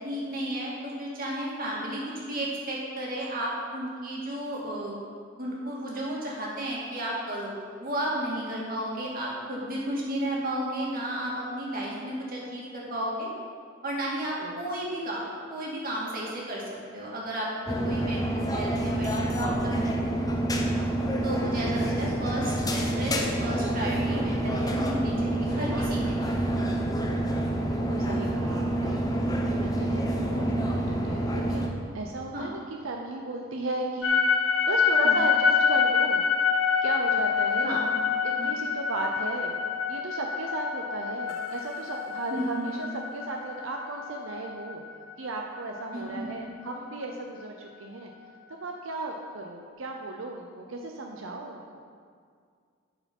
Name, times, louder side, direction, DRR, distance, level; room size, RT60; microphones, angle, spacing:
voice 1, 0.0-4.9 5.4-7.5 7.8-13.3 13.8-15.2 15.5-16.6 16.9-20.1 21.2-26.4 30.2-30.5 32.3-32.6 35.0-35.3 37.6-38.0 38.4-38.6 42.3-42.7 45.9-46.3, right 1 dB, 45° right, -4 dB, 2.2 m, -33 dB
sound 1, 17.7-31.7, right 1 dB, 20° left, 0.7 m, -27 dB
voice 2, 21.4-21.7 27.6-36.2 36.8-37.8 38.2-39.6 39.9-44.8 45.2-48.1 48.6-51.8, right 2 dB, 90° right, 1 dB, 0.7 m, -36 dB
sound 2, 34.0-46.2, left 6 dB, 80° left, 0.6 m, -26 dB
11.0 x 4.8 x 5.3 m, 2.1 s
head